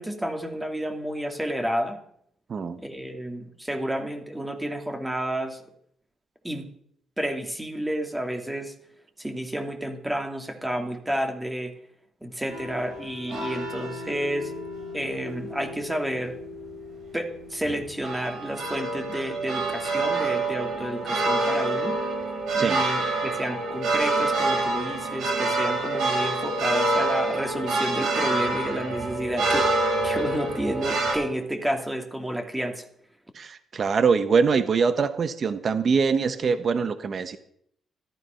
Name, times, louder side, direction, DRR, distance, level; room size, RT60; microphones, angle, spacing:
voice 1, 0.0-2.0 2.8-5.6 6.4-6.7 7.2-8.7 9.2-11.7 12.2-14.5 14.9-16.4 17.1-22.0 22.5-32.8, right 1 dB, 10° right, 5 dB, 2.6 m, -30 dB
sound 1, 12.5-31.1, right 2 dB, 75° right, 7.9 m, -27 dB
voice 2, 33.3-37.4, right 5 dB, 45° right, 11 dB, 1.2 m, -23 dB
14.0 x 13.0 x 5.8 m, 0.68 s
cardioid pair, 90°, 0 cm